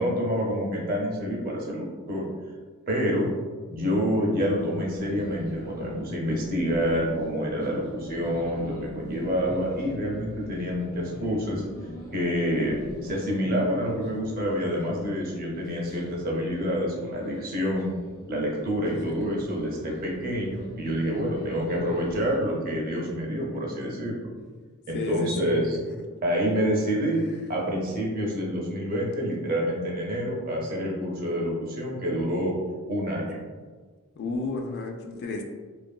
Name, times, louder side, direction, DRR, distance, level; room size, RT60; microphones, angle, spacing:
voice 1, 0.0-2.2 2.9-3.3 3.7-11.6 12.1-17.9 18.3-24.3 24.9-25.8 26.2-32.6 32.9-33.4, equal, 40° right, -2 dB, 0.6 m, -27 dB
sound 1, 4.4-22.4, left 1 dB, 65° left, 1.0 m, -43 dB
voice 2, 24.9-25.5 25.9-26.1 34.2-35.4, left 3 dB, 50° left, 3 dB, 0.3 m, -32 dB
2.7 x 2.5 x 2.2 m, 1.4 s
head